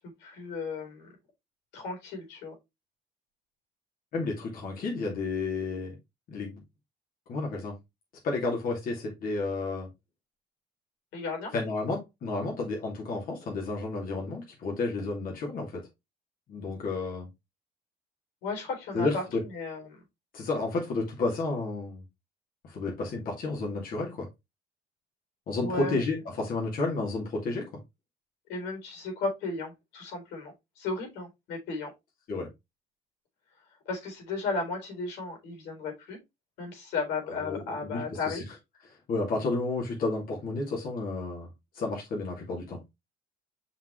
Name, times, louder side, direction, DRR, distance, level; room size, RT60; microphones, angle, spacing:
voice 1, 0.2-1.1 1.7-2.5 11.1-11.5 18.4-19.2 19.5-19.8 25.6-26.0 28.5-31.9 33.9-36.2 36.6-38.4, left 3 dB, 90° left, 3.9 m, -34 dB
voice 2, 4.1-5.9 6.3-6.6 7.3-7.7 8.2-9.9 11.5-15.9 16.5-17.3 18.9-19.4 20.3-22.0 22.6-24.3 25.5-27.7 32.3-32.5 37.3-38.4 38.9-41.5 41.7-42.8, left 3 dB, 55° left, 2.6 m, -31 dB
5.9 x 5.6 x 3.2 m
cardioid pair, 110°, 17 cm